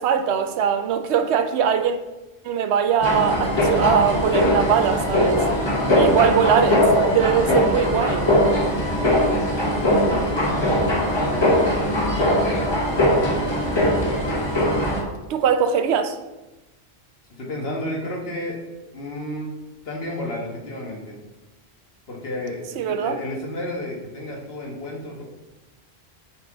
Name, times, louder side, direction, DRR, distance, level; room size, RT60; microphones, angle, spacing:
voice 1, 0.0-2.0 2.4-5.4 5.9-8.3 15.3-16.2 22.8-23.2, right 7 dB, 85° right, 9 dB, 0.8 m, -21 dB
sound 1, 3.0-15.0, equal, 25° left, 1.0 m, -20 dB
voice 2, 9.1-11.0 17.4-18.6 18.9-19.5 19.8-21.2 22.1-25.2, left 1 dB, 65° left, -1 dB, 1.5 m, -32 dB
7.7 x 3.7 x 3.8 m, 1.1 s
omnidirectional pair, 1.1 m